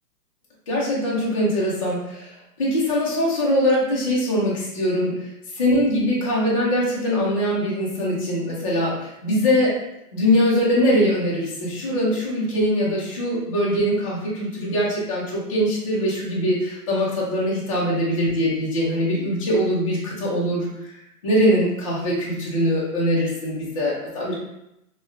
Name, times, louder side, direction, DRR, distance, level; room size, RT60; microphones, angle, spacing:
voice 1, 0.7-5.3 5.5-9.8 10.1-21.0 21.2-24.4, equal, 25° left, -6 dB, 0.4 m, -22 dB
3.4 x 2.1 x 2.3 m, 0.85 s
hypercardioid pair, 135°, 48 cm